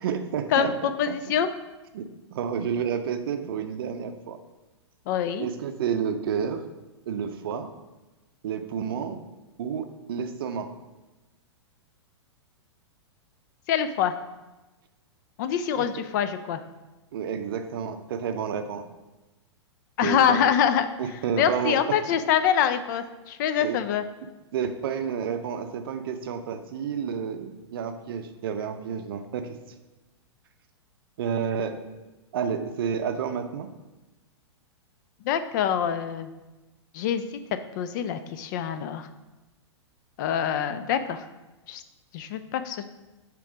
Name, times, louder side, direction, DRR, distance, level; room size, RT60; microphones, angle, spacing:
voice 1, 0.0-1.1 1.9-4.4 5.4-6.6 7.1-7.7 8.4-9.2 9.6-10.7 15.8-15.9 17.1-18.8 20.0-20.5 21.0-21.8 23.6-23.8 24.5-29.5 31.2-31.8 32.3-33.7, right 7 dB, 55° right, 8 dB, 0.5 m, -30 dB
voice 2, 0.5-1.5 5.1-5.5 13.7-14.1 15.4-16.6 20.0-20.9 21.4-24.0 35.2-36.3 36.9-37.2 37.8-39.1 40.2-41.3 41.7-41.8 42.1-42.9, left 8 dB, 40° left, 10 dB, 0.4 m, -25 dB
7.0 x 3.0 x 4.9 m, 1.1 s
figure-of-eight pair, 105°, 15 cm